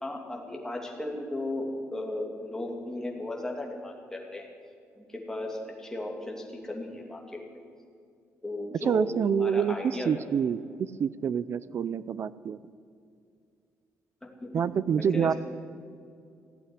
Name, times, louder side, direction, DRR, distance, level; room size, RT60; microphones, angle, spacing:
voice 1, 0.0-4.5 4.9-7.6 8.4-10.1 14.4-14.6 15.0-15.3, left 1 dB, 10° left, 0 dB, 2.7 m, -36 dB
voice 2, 8.8-12.6 14.5-15.3, right 7 dB, 50° right, 18 dB, 0.5 m, -27 dB
16.0 x 8.5 x 9.8 m, 2.3 s
cardioid pair, 110°, 6 cm